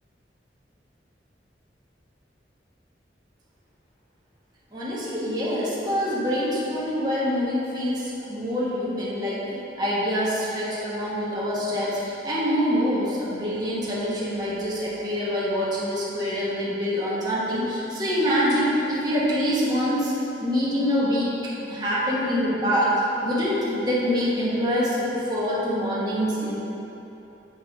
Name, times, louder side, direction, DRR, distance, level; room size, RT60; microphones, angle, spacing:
voice 1, 4.7-20.1 20.4-21.3 21.7-22.9 23.2-26.6, equal, 25° right, -9 dB, 1.3 m, -25 dB
7.1 x 5.3 x 3.5 m, 3.0 s
head